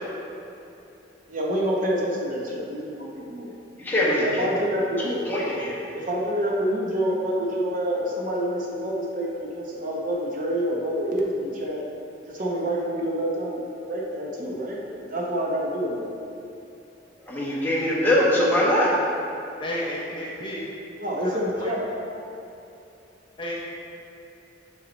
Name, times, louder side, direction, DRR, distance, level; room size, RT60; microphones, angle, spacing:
voice 1, 1.3-3.5 4.0-5.2 5.9-11.8 12.3-14.8 15.1-16.1 18.3-18.8 21.0-21.8, right 1 dB, 45° right, -3 dB, 0.9 m, -27 dB
voice 2, 3.8-4.4 5.0-5.8 17.3-18.9, left 1 dB, 10° left, -7 dB, 1.2 m, -22 dB
voice 3, 19.6-20.7 21.5-21.7 23.4-23.6, left 1 dB, 25° left, -4 dB, 0.7 m, -31 dB
5.8 x 5.8 x 4.1 m, 2.8 s
head